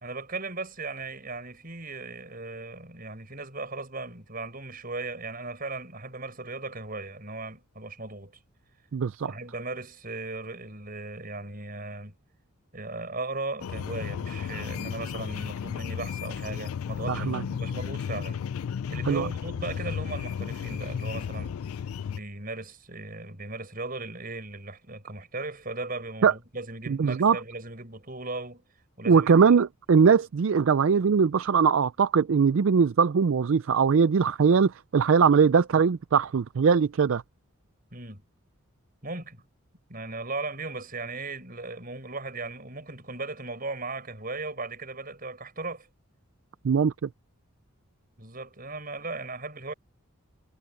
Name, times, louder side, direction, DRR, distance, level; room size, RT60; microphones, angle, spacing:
voice 1, 0.0-8.4 9.3-12.2 12.7-18.5 18.9-21.6 22.1-28.6 29.0-29.3 37.9-38.2 39.0-39.4 39.9-45.9 48.2-49.7, right 3 dB, 40° right, 5.9 m, -37 dB
voice 2, 8.9-9.3 17.1-17.4 19.0-19.3 26.2-26.3 26.9-27.4 29.1-37.2 46.6-47.1, right 6 dB, 65° right, 0.4 m, -21 dB
sound 1, 13.6-22.2, left 7 dB, 75° left, 0.3 m, -34 dB
head